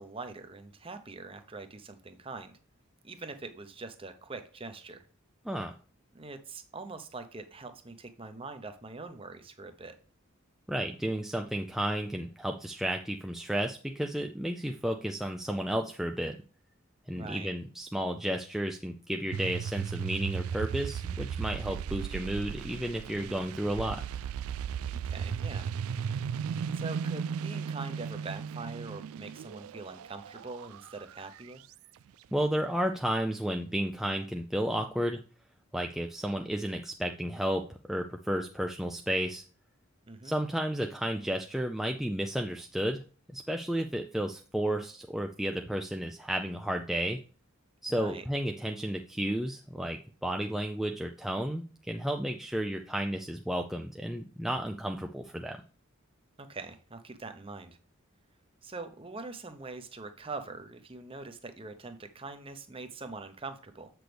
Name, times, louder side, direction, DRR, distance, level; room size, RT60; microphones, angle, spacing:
voice 1, 0.0-2.6 3.0-5.0 6.1-10.0 17.1-17.5 24.9-25.7 26.7-31.6 40.1-40.4 47.9-48.2 56.4-57.8 58.6-63.9, right 3 dB, 25° right, 8 dB, 0.8 m, -43 dB
voice 2, 5.4-5.8 10.7-16.4 17.1-24.0 32.3-35.2 35.7-39.4 40.2-43.0 43.3-47.2 47.8-55.6, right 1 dB, ahead, 3 dB, 0.4 m, -32 dB
sound 1, 19.3-31.7, right 7 dB, 80° right, 0.3 m, -36 dB
8.1 x 6.1 x 3.3 m, 0.38 s
head